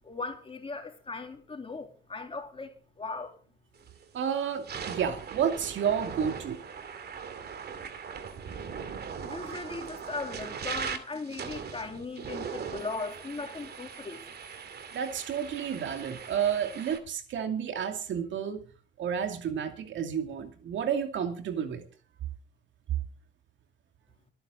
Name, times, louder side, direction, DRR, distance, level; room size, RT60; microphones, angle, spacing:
voice 1, 0.0-3.3 9.2-14.2, left 3 dB, 25° left, 3.4 m, -38 dB
sound 1, 3.8-4.0 4.5-17.0, right 6 dB, 55° right, 2.5 m, -40 dB
voice 2, 4.1-6.6 14.9-18.6 19.0-21.8 22.9-23.0, right 8 dB, 70° right, 2.4 m, -31 dB
25.5 x 9.4 x 3.9 m
cardioid pair, 90°, 20 cm